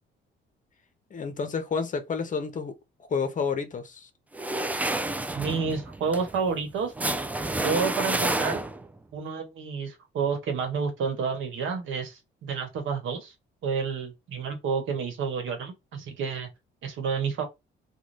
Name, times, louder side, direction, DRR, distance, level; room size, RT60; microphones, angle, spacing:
voice 1, 1.1-2.7 3.1-4.1, left 5 dB, 40° left, 0.7 m, -30 dB
sound 1, 4.3-9.0, right 2 dB, 10° right, 0.3 m, -29 dB
voice 2, 5.3-6.9 7.6-8.6 9.1-13.3 13.6-16.5 16.8-17.4, right 5 dB, 80° right, 1.1 m, -30 dB
2.6 x 2.3 x 3.2 m
cardioid pair, 90°, 20 cm